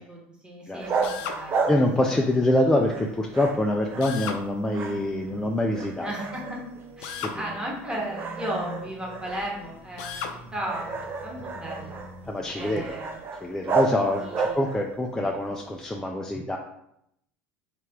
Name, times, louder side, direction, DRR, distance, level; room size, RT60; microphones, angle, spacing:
voice 1, 0.0-1.7 2.0-2.1 6.0-6.6 7.0-12.0 12.5-13.2 14.0-14.6, right 1 dB, 15° right, -2 dB, 1.2 m, -35 dB
sound 1, 0.8-2.6 2.9-4.4 4.7-5.4 5.7-6.9 7.4-7.5 8.1-15.0, right 4 dB, 35° right, 0.6 m, -32 dB
Drill, 1.0-1.4 4.0-4.4 7.0-7.4 10.0-10.4, left 6 dB, 70° left, 0.5 m, -34 dB
voice 2, 1.7-6.1 7.2-7.4 7.9-8.0 12.3-13.0 13.4-16.6, left 1 dB, 10° left, 0 dB, 0.4 m, -25 dB
sound 2, 3.9-13.8, right 3 dB, 70° right, 1.0 m, -47 dB
3.1 x 2.9 x 3.6 m, 0.76 s
supercardioid pair, 95°, 6 cm